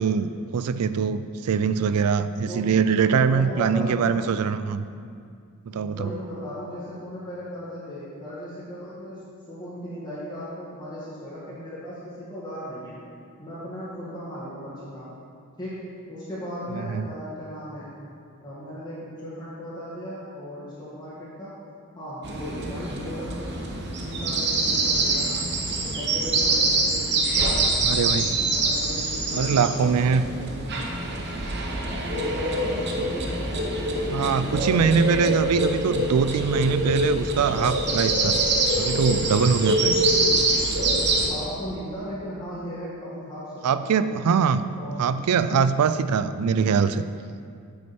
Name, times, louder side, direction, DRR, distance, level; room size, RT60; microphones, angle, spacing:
voice 1, 0.0-4.8 5.7-6.1 16.8-17.0 27.8-28.4 29.3-30.3 34.1-38.4 38.8-40.1 43.6-44.6 45.0-47.0, right 6 dB, 80° right, 13 dB, 0.4 m, -23 dB
voice 2, 2.5-2.8 3.2-4.2 5.7-13.0 13.4-15.1 15.6-17.9 18.4-21.6 22.0-23.6 23.8-25.4 25.8-30.5 32.0-35.7 41.3-44.2 44.8-45.0, equal, 20° left, -12 dB, 2.0 m, -37 dB
sound 1, 22.2-41.3, right 2 dB, 50° right, 0.9 m, -25 dB
8.9 x 6.4 x 4.4 m, 2.3 s
head